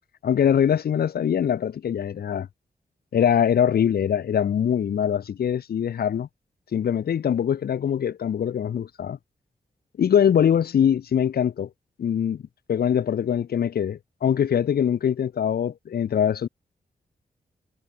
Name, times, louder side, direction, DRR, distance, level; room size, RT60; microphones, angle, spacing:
voice 1, 0.2-2.5 3.1-6.3 6.7-9.2 10.0-11.7 12.0-12.4 12.7-16.5, left 8 dB, 90° left, 3.9 m, -23 dB
cardioid pair, 65°, 16 cm